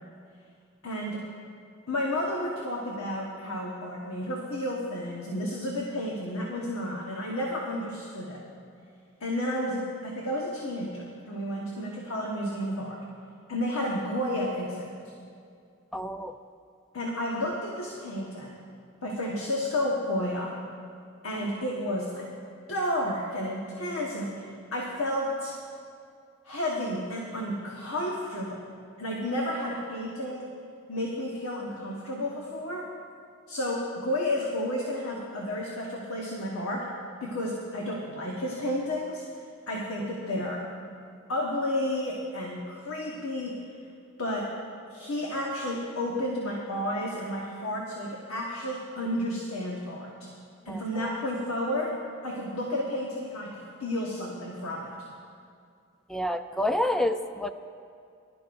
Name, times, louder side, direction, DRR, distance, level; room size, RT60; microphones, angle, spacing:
voice 1, 0.8-1.2 1.9-8.4 9.2-13.0 13.5-14.9 16.9-18.5 19.0-20.5 21.2-22.3 22.7-25.6 26.4-28.6 29.0-30.5 30.9-32.9 33.5-36.9 37.2-39.2 39.7-40.6 41.3-43.6 44.2-44.5 44.9-50.3 50.6-52.0 52.2-54.9, left 1 dB, 70° left, -2 dB, 1.4 m, -31 dB
voice 2, 15.9-16.4 50.7-51.2 56.1-57.5, left 1 dB, ahead, 8 dB, 0.4 m, -29 dB
21.5 x 12.0 x 2.6 m, 2.3 s
head